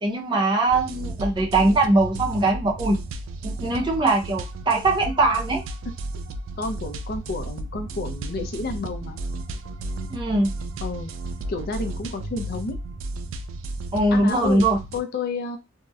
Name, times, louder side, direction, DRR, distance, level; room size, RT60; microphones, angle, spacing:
voice 1, 0.0-3.0 3.4-5.6 10.1-10.5 13.9-14.8, right 2 dB, 25° right, 0 dB, 0.5 m, -21 dB
sound 1, 0.7-15.0, right 2 dB, 75° right, 0.3 m, -34 dB
voice 2, 6.6-9.2 10.8-11.1 11.5-12.8 14.1-14.6 14.9-15.6, left 3 dB, 50° left, 5 dB, 0.4 m, -30 dB
2.6 x 2.0 x 2.3 m, 0.23 s
head